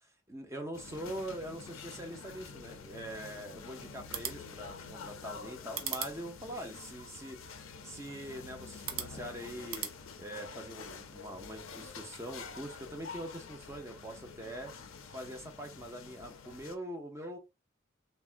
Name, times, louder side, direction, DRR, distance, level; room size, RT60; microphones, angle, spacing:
voice 1, 0.3-7.4 7.8-9.9 10.2-14.7 15.1-17.4, equal, 15° right, 0.7 m, -43 dB
sound 1, 0.7-16.8, left 5 dB, 85° left, 0.5 m, -48 dB
sound 2, 3.9-10.0, right 8 dB, 85° right, 0.6 m, -44 dB
3.3 x 2.2 x 2.4 m
head